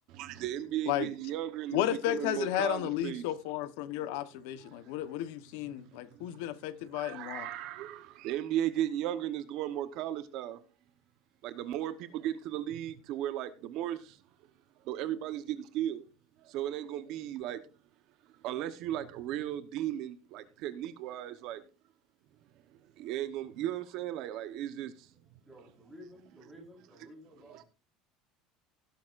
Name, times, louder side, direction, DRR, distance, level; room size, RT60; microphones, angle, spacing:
voice 1, 0.1-3.3 4.6-4.9 5.7-6.4 6.9-10.6 11.4-14.2 14.8-16.0 16.4-17.6 18.4-21.6 23.0-25.1, right 12 dB, 50° right, 1.0 m, -36 dB
voice 2, 1.7-7.5, left 12 dB, 80° left, 1.0 m, -33 dB
voice 3, 25.1-27.6, equal, 5° right, 4.1 m, -53 dB
17.0 x 10.5 x 2.5 m
cardioid pair, 175°, 0 cm